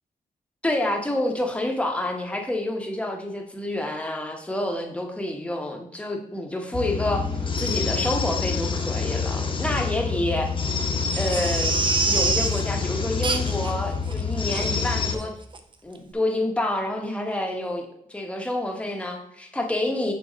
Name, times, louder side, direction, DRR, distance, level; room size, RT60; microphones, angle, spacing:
voice 1, 0.6-7.3 7.6-10.5 11.1-15.3 15.8-20.1, left 1 dB, 10° left, 2 dB, 0.9 m, -28 dB
sound 1, 6.7-15.1, left 5 dB, 35° left, 0.9 m, -27 dB
Crying sobbing, 11.1-12.6 13.2-13.7 14.1-14.2 14.5-14.7 15.1-15.3 15.5-15.6, right 4 dB, 35° right, 0.6 m, -25 dB
6.4 x 4.0 x 5.0 m, 0.76 s
wide cardioid pair, 150°, 15 cm